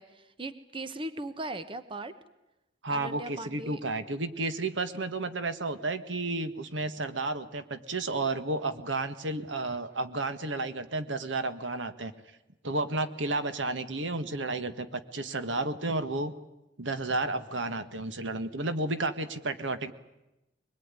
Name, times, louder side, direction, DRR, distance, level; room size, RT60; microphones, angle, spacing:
voice 1, 0.0-2.1 2.9-3.8, right 2 dB, 30° right, 11 dB, 1.1 m, -38 dB
voice 2, 2.8-12.1 12.6-16.3 16.8-19.9, right 2 dB, 80° right, 10 dB, 1.7 m, -32 dB
23.5 x 21.5 x 9.8 m, 0.96 s
head